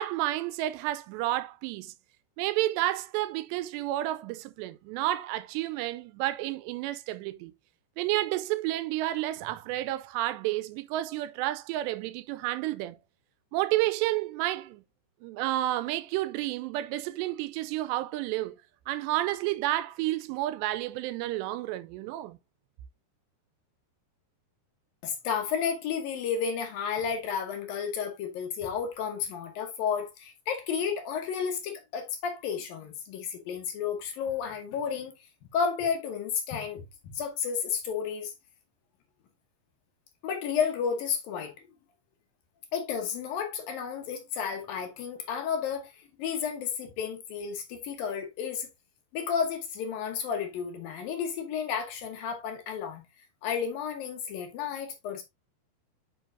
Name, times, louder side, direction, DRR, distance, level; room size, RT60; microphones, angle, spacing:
voice 1, 0.0-1.9 2.4-7.5 8.0-13.0 13.5-14.8 15.2-18.6 18.9-22.4, right 15 dB, 85° right, 2.7 m, -30 dB
voice 2, 25.0-35.1 35.5-38.3 40.2-41.5 42.7-48.7 49.1-53.0 53.4-55.2, left 7 dB, 65° left, 2.7 m, -32 dB
8.7 x 5.3 x 2.6 m
omnidirectional pair, 4.9 m